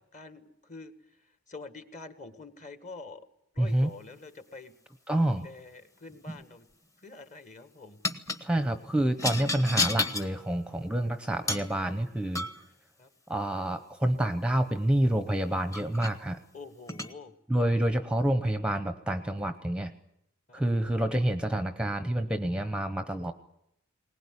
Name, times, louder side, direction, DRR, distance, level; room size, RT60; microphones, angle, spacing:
voice 1, 0.0-3.3 3.5-4.7 5.3-6.7 7.0-8.0 13.0-13.1 16.5-17.3 20.5-20.6, left 3 dB, 35° left, 10 dB, 1.6 m, -46 dB
voice 2, 3.6-3.9 5.1-5.5 8.4-12.5 13.3-16.4 17.5-19.9 20.5-23.3, right 1 dB, 5° right, 9 dB, 0.8 m, -28 dB
sound 1, 6.1-6.5 8.0-8.4 9.2-10.3 11.5-11.7 12.3-12.7 15.1-15.2 15.7-16.2 16.9-17.1, left 2 dB, 15° left, 1.1 m, -31 dB
21.0 x 19.0 x 9.9 m, 0.78 s
head